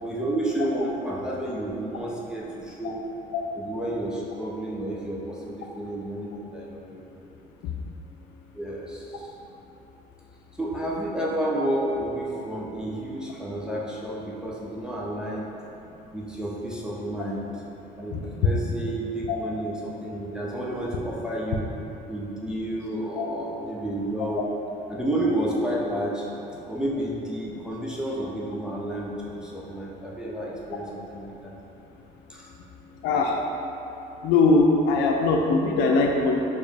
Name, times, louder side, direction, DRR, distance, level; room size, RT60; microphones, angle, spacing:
voice 1, 0.0-3.0 3.6-7.1 8.5-9.3 10.6-15.5 16.1-17.5 17.9-21.7 22.1-24.4 24.9-26.3 26.7-31.6 32.3-32.5, right 1 dB, 5° right, -5 dB, 0.6 m, -31 dB
voice 2, 33.0-33.3 34.2-36.4, left 3 dB, 75° left, 1 dB, 0.6 m, -21 dB
4.3 x 3.1 x 3.4 m, 3.0 s
cardioid pair, 105°, 18 cm